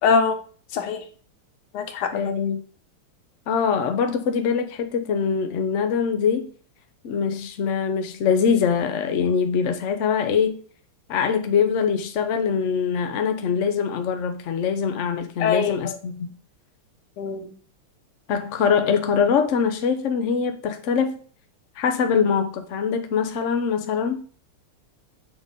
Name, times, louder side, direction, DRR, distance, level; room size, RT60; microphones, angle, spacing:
voice 1, 0.0-0.4 0.7-1.0 1.7-2.3 15.4-15.7 17.2-17.5, left 5 dB, 90° left, 7 dB, 1.7 m, -22 dB
voice 2, 2.1-2.6 3.5-6.5 7.0-10.6 11.1-16.3 18.3-21.2 21.8-24.2, left 6 dB, 65° left, 6 dB, 0.7 m, -23 dB
6.6 x 4.1 x 3.6 m, 0.43 s
omnidirectional pair, 2.3 m